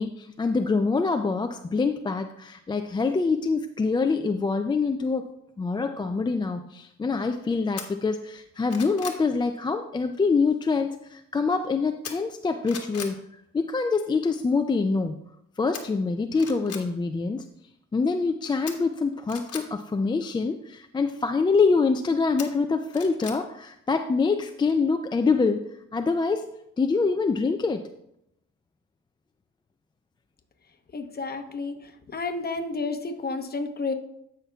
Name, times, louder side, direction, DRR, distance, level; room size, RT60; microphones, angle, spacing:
voice 1, 0.0-13.2 13.5-15.1 15.6-17.4 17.9-26.5 26.8-27.9, left 4 dB, 15° left, 7 dB, 0.3 m, -25 dB
sound 1, 7.8-7.9 8.4-9.2 12.0-12.4 12.7-13.2 15.7-15.8 16.3-16.8 18.7-19.6 22.4-23.4 23.8-23.9, left 6 dB, 55° left, 1.2 m, -38 dB
voice 2, 30.9-31.8 32.1-33.9, left 3 dB, 30° left, 6 dB, 0.9 m, -30 dB
14.0 x 5.8 x 2.3 m, 0.79 s
cardioid pair, 90°, 30 cm